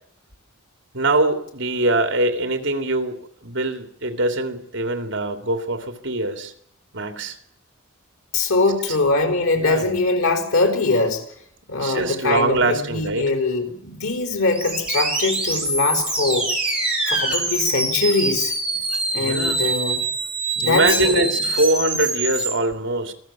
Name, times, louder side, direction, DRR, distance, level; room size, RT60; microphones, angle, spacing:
voice 1, 0.9-6.5 6.9-7.4 8.9-9.0 9.5-9.9 11.8-13.3 19.1-19.6 20.6-23.1, right 2 dB, 60° right, 6 dB, 2.9 m, -23 dB
voice 2, 8.3-11.2 11.7-16.5 17.1-18.5 19.1-20.1 20.6-21.3, left 3 dB, 90° left, 5 dB, 4.5 m, -22 dB
sound 1, 14.5-22.5, right 2 dB, 5° right, 5.5 m, -24 dB
26.5 x 16.5 x 7.5 m, 0.69 s
head